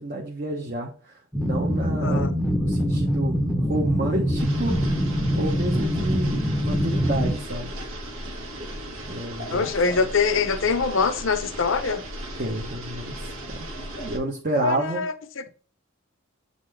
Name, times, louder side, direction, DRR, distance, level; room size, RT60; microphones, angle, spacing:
voice 1, 0.0-4.8 5.4-7.8 9.1-9.7 12.4-13.5 14.0-15.0, right 2 dB, 40° right, 0.9 m, -30 dB
sound 1, 1.3-7.4, equal, ahead, 0.7 m, -24 dB
voice 2, 2.0-2.3 9.5-12.0 14.6-15.5, left 5 dB, 60° left, 0.7 m, -24 dB
sound 2, 4.4-14.2, right 1 dB, 75° right, 1.6 m, -36 dB
8.4 x 4.0 x 3.2 m
head